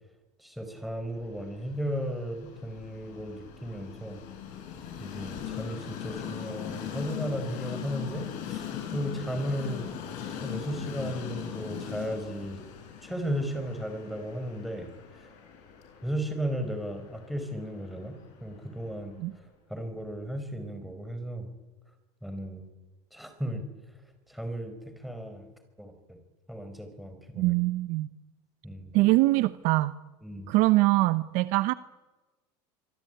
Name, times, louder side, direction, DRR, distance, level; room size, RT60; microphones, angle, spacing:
voice 1, 0.4-4.2 5.0-9.8 10.4-12.6 13.0-14.9 15.2-15.3 16.0-18.2 18.4-19.2 19.7-21.5 22.2-22.7 23.1-23.6 24.3-25.5 25.8-26.2 26.5-27.5 28.6-28.9 30.2-30.5, equal, ahead, 6 dB, 5.0 m, -35 dB
Train, 1.2-19.3, left 9 dB, 55° left, 7.2 m, -40 dB
voice 2, 27.4-28.1 28.9-29.9 30.5-31.7, right 19 dB, 60° right, 14 dB, 0.9 m, -23 dB
26.0 x 23.0 x 9.2 m, 1.2 s
supercardioid pair, 140°, 15 cm